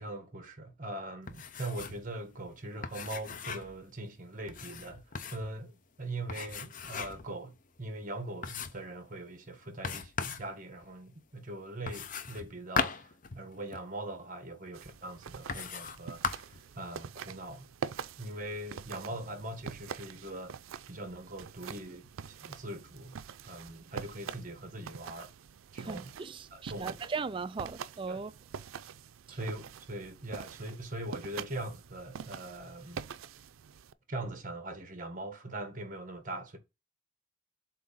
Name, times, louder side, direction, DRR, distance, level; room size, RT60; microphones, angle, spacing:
voice 1, 0.0-17.7 18.2-20.6 20.9-25.3 25.7-26.1 26.5-27.0 28.1-28.2 29.3-33.0 34.1-36.6, right 1 dB, 40° right, 1.5 m, -41 dB
sound 1, 1.3-2.1 2.3-2.4 2.8-3.8 4.5-5.5 6.3-7.3 7.8-7.9 8.4-8.9 9.8-10.5 11.9-13.9 14.7-14.8 15.5-16.6, left 5 dB, 40° left, 0.6 m, -37 dB
sound 2, 14.7-33.9, right 7 dB, 90° right, 0.4 m, -45 dB
voice 2, 25.7-28.3 29.3-29.4, right 4 dB, 25° right, 0.3 m, -38 dB
7.6 x 2.8 x 5.4 m
head